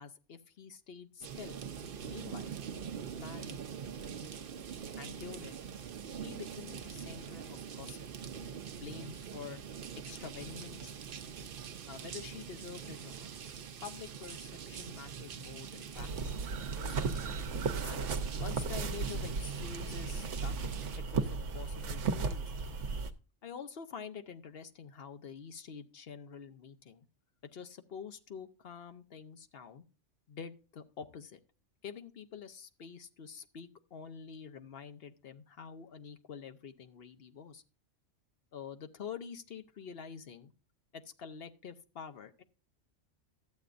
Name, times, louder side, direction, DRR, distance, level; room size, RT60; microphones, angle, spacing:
voice 1, 0.0-1.6 2.0-2.6 3.2-3.6 5.0-5.6 6.2-8.0 8.8-9.6 10.0-10.9 11.9-13.3 13.8-16.4 16.7-17.3 17.8-18.1 18.4-20.6 20.9-22.5 23.4-27.1 27.5-29.8 30.3-31.4 31.8-37.6 38.5-40.5 40.9-42.4, left 6 dB, 55° left, 8 dB, 0.9 m, -47 dB
sound 1, 1.2-21.0, right 7 dB, 55° right, 0.7 m, -44 dB
sound 2, 15.9-23.1, right 4 dB, 75° right, 1.1 m, -35 dB
12.5 x 8.0 x 2.5 m, 0.33 s
omnidirectional pair, 1.3 m